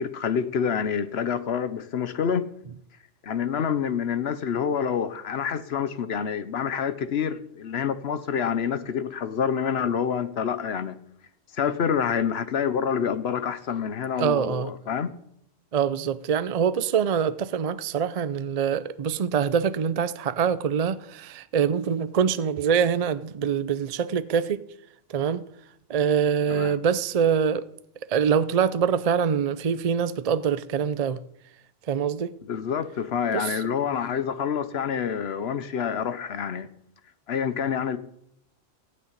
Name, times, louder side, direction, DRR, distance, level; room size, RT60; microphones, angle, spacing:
voice 1, 0.0-2.5 3.2-11.0 11.5-15.1 26.5-26.7 32.4-36.7 37.3-38.0, left 7 dB, 60° left, 1.0 m, -27 dB
voice 2, 14.2-14.7 15.7-24.6 25.1-25.4 25.9-27.6 28.1-31.2 31.9-32.3 33.3-33.7, right 7 dB, 50° right, 0.4 m, -24 dB
15.0 x 6.5 x 9.7 m
omnidirectional pair, 1.3 m